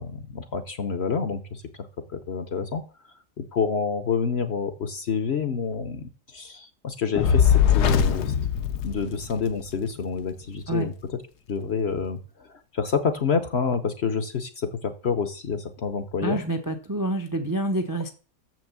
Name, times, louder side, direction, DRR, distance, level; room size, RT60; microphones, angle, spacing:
voice 1, 0.0-1.6 2.1-2.8 3.4-8.3 8.8-10.9 11.5-16.4, left 5 dB, 50° left, 10 dB, 0.9 m, -28 dB
Fire, 7.2-9.6, left 8 dB, 75° left, 1.3 m, -21 dB
voice 2, 16.2-18.1, right 2 dB, 20° right, 5 dB, 0.5 m, -27 dB
7.0 x 6.1 x 7.3 m, 0.38 s
omnidirectional pair, 1.8 m